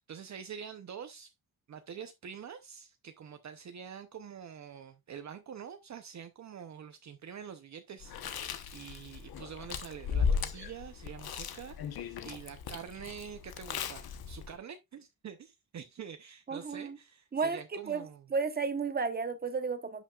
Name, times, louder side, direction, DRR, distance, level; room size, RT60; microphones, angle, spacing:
voice 1, 0.1-1.3 1.7-18.3, right 7 dB, 50° right, 0.7 m, -46 dB
Chewing mastication, 8.0-14.6, left 6 dB, 75° left, 1.1 m, -36 dB
voice 2, 16.5-17.0 17.3-17.6 17.9-18.1 18.3-20.0, right 5 dB, 25° right, 1.0 m, -32 dB
11.0 x 6.2 x 2.4 m
wide cardioid pair, 165°, 37 cm